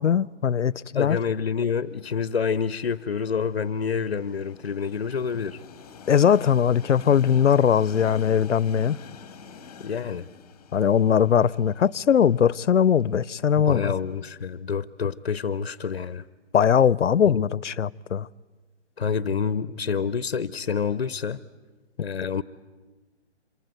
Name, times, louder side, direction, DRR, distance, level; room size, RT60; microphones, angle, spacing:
voice 1, 0.0-1.2 6.1-9.0 10.7-13.9 16.5-18.3, left 8 dB, 90° left, 0.8 m, -20 dB
voice 2, 0.9-5.6 9.8-10.3 13.6-16.2 17.3-17.5 19.0-21.4 22.0-22.4, left 6 dB, 55° left, 0.8 m, -28 dB
Train, 1.4-14.3, left 6 dB, 10° left, 1.5 m, -48 dB
27.0 x 24.0 x 9.2 m
hypercardioid pair, 175°, 35 cm